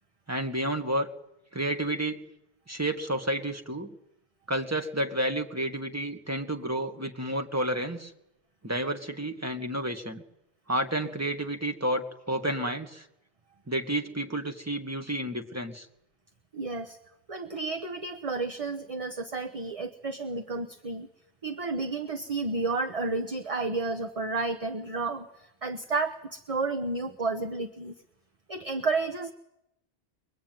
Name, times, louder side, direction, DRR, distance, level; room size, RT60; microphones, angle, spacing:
voice 1, 0.3-1.1 1.5-2.2 2.7-3.9 4.5-8.1 8.6-10.2 10.7-13.1 13.7-15.9, right 1 dB, 15° right, 4 dB, 1.9 m, -30 dB
voice 2, 16.5-17.0 17.3-21.1 21.4-27.9 28.5-29.3, right 3 dB, 35° right, 7 dB, 1.0 m, -31 dB
23.5 x 22.0 x 9.3 m, 0.85 s
omnidirectional pair, 1.1 m